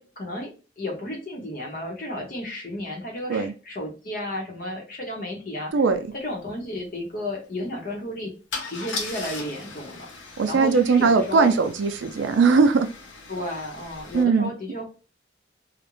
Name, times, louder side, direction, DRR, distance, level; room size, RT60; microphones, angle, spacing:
voice 1, 0.0-5.7 6.1-8.3 8.7-11.6 13.3-14.9, left 1 dB, 45° left, 0 dB, 0.8 m, -33 dB
Car / Engine starting / Idling, 5.9-6.0 6.3-6.5 8.5-14.2, left 4 dB, 85° left, 0.7 m, -38 dB
voice 2, 10.4-12.9 14.1-14.5, right 4 dB, 75° right, 7 dB, 0.4 m, -19 dB
2.4 x 2.0 x 2.9 m, 0.35 s
head